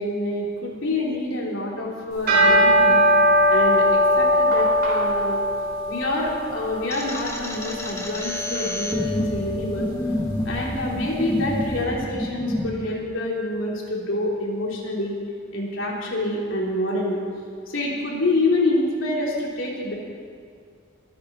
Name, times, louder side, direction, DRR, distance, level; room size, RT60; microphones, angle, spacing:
voice 1, 0.0-3.0 3.5-5.4 5.9-9.9 10.5-15.2 15.5-17.2 17.7-20.0, left 2 dB, 90° left, -3 dB, 3.4 m, -27 dB
sound 1, 2.1-11.5, equal, 50° right, 4.3 m, -21 dB
sound 2, 6.9-12.7, left 1 dB, 15° left, 1.3 m, -29 dB
22.5 x 10.5 x 4.4 m, 2.2 s
head